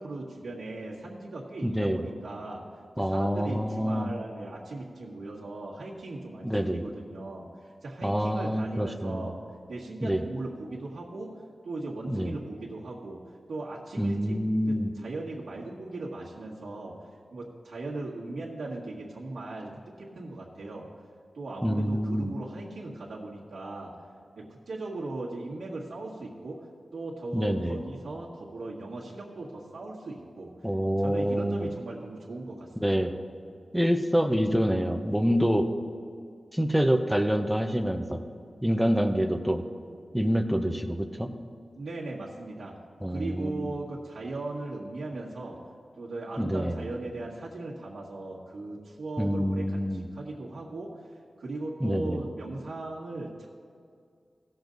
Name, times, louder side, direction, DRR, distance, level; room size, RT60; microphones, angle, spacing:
voice 1, 0.0-2.6 3.0-9.4 9.7-11.4 11.6-13.2 13.5-14.4 14.7-16.9 17.3-19.7 20.0-20.9 21.3-23.9 24.4-26.7 26.9-30.5 31.0-33.0 41.8-42.7 43.1-45.6 46.0-51.0 51.4-53.5, right 2 dB, 90° right, -6 dB, 1.7 m, -38 dB
voice 2, 1.6-2.1 3.0-4.1 6.4-6.8 8.0-9.3 10.0-10.2 12.1-12.3 14.0-14.9 21.6-22.3 27.3-27.8 30.6-31.7 32.8-33.1 33.7-35.7 36.5-38.2 38.6-39.6 40.1-41.3 43.0-43.7 46.4-46.8 49.2-50.1 51.8-52.2, equal, 5° right, 7 dB, 0.7 m, -26 dB
16.5 x 7.1 x 4.0 m, 2.2 s
wide cardioid pair, 105°, 0 cm